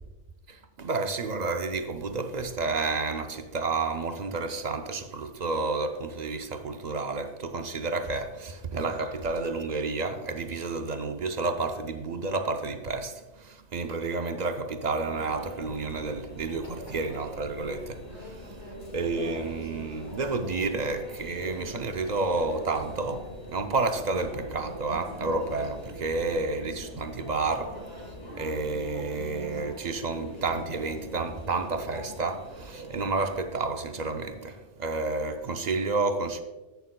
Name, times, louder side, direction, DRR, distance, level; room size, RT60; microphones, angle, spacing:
voice 1, 0.5-36.4, right 3 dB, 50° right, 0.6 m, -30 dB
Conversation / Chatter / Crowd, 15.0-33.4, left 1 dB, 75° left, 2.3 m, -42 dB
11.5 x 8.1 x 2.2 m
omnidirectional pair, 1.2 m